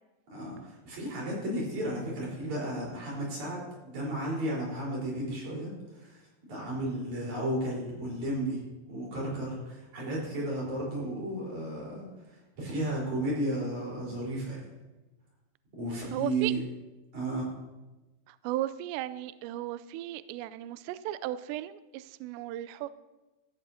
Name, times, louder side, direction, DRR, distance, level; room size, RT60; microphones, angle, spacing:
voice 1, 0.3-8.6 8.9-12.1 12.6-14.6 15.7-16.6 17.1-17.5, right 1 dB, 40° right, -4 dB, 5.3 m, -33 dB
voice 2, 16.1-16.5 18.3-22.9, right 14 dB, 90° right, 15 dB, 2.5 m, -35 dB
15.5 x 15.0 x 2.8 m, 1.1 s
omnidirectional pair, 5.6 m